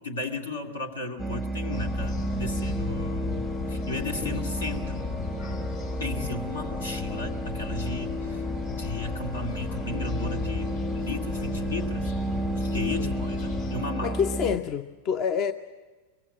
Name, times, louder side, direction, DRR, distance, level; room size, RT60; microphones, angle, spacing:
voice 1, 0.0-5.0 6.0-12.1 12.6-14.2, left 2 dB, 70° left, 5 dB, 2.2 m, -35 dB
sound 1, 1.2-14.6, right 1 dB, ahead, 0.8 m, -32 dB
sound 2, 1.7-13.7, left 6 dB, 50° left, 5.3 m, -36 dB
voice 2, 14.0-15.5, left 7 dB, 35° left, 12 dB, 0.7 m, -28 dB
23.0 x 23.0 x 7.3 m, 1.3 s
figure-of-eight pair, 90°, 0 cm